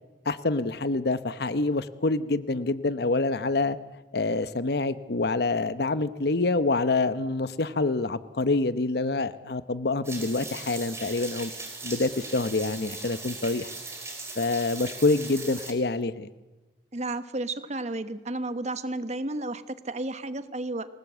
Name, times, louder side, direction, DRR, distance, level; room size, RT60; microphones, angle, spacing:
voice 1, 0.3-3.8 4.1-11.5 11.8-13.7 14.4-16.3, left 3 dB, 65° left, 13 dB, 0.9 m, -26 dB
sound 1, 10.0-15.7, right 3 dB, 15° right, 4.5 m, -39 dB
voice 2, 16.9-20.9, right 2 dB, 40° right, 12 dB, 1.2 m, -32 dB
26.5 x 18.5 x 8.1 m, 1.2 s
head